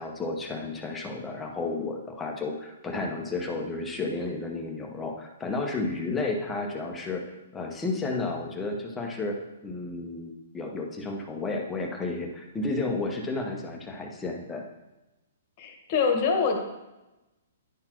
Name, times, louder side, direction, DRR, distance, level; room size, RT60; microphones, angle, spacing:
voice 1, 0.0-9.4 9.6-14.6, left 3 dB, 10° left, 1 dB, 0.8 m, -32 dB
voice 2, 15.6-16.7, left 5 dB, 35° left, 3 dB, 1.2 m, -25 dB
10.0 x 4.0 x 4.4 m, 1.0 s
hypercardioid pair, 165°, 0 cm